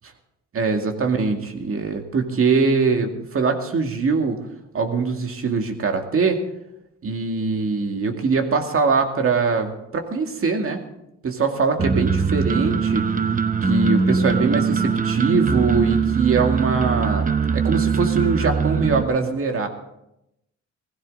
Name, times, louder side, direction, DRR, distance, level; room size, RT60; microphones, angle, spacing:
voice 1, 0.5-4.4 4.7-6.4 7.0-10.8 11.2-13.1 13.6-17.3 17.5-19.7, right 4 dB, 45° right, 4 dB, 2.2 m, -22 dB
sound 1, 11.8-19.0, right 5 dB, 25° right, 0.9 m, -21 dB
17.5 x 15.5 x 3.8 m, 0.86 s
cardioid pair, 90°, 30 cm